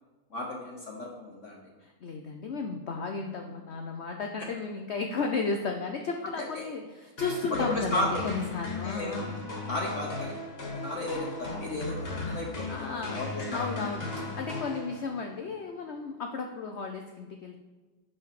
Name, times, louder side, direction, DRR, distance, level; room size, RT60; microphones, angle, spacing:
voice 1, 0.3-1.6 4.4-4.5 6.3-6.7 7.5-8.2 8.8-9.2 9.7-10.4 10.8-13.9, left 1 dB, 50° left, -1 dB, 1.0 m, -34 dB
voice 2, 1.8-9.4 12.7-17.6, left 4 dB, 85° left, 3 dB, 0.6 m, -34 dB
sound 1, 7.2-15.3, left 3 dB, 35° left, 1.4 m, -37 dB
5.4 x 5.2 x 5.9 m, 1.3 s
omnidirectional pair, 1.9 m